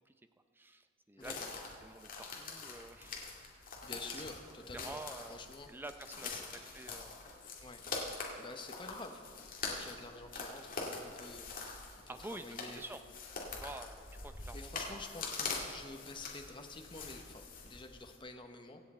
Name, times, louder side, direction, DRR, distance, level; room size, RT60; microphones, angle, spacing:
voice 1, 0.5-3.2 3.5-3.8 4.0-4.2 4.7-6.5 6.7-7.2 12.1-13.0 13.5-15.4, right 2 dB, 10° right, 8 dB, 0.5 m, -49 dB
sound 1, 1.2-18.2, left 4 dB, 40° left, 2.3 m, -44 dB
voice 2, 1.2-1.5 3.8-5.0 5.3-5.7 6.2-6.4 7.6-7.8 8.4-9.2 9.7-12.8 14.5-18.8, left 3 dB, 25° left, 5 dB, 0.9 m, -49 dB
25.0 x 8.4 x 4.3 m, 2.1 s
head